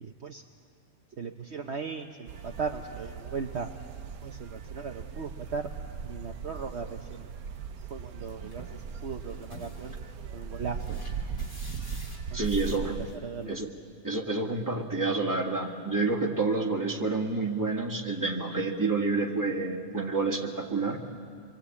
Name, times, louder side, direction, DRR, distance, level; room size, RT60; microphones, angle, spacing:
voice 1, 0.0-0.4 1.2-3.7 4.2-5.7 6.0-7.3 7.9-10.0 10.3-11.0 12.3-13.6, right 5 dB, 55° right, 3 dB, 1.2 m, -38 dB
sound 1, 2.3-13.1, right 5 dB, 85° right, 1.4 m, -39 dB
sound 2, 8.4-13.5, left 1 dB, 40° left, 3.7 m, -50 dB
voice 2, 12.3-13.0 13.5-13.7 14.0-21.0, right 3 dB, 15° right, 0 dB, 1.9 m, -29 dB
26.5 x 23.5 x 8.4 m, 2.2 s
omnidirectional pair, 1.5 m